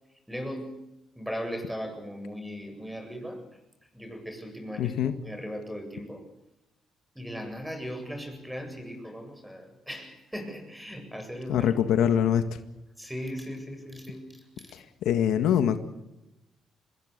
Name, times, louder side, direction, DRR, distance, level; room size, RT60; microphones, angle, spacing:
voice 1, 0.3-0.8 1.1-3.4 3.9-6.2 7.1-11.7 12.0-12.1 13.0-14.8, equal, 5° right, 6 dB, 7.9 m, -38 dB
voice 2, 4.8-5.1 11.5-12.4 14.7-15.8, left 9 dB, 85° left, 9 dB, 1.8 m, -24 dB
26.0 x 20.5 x 6.8 m, 0.92 s
cardioid pair, 90°, 0 cm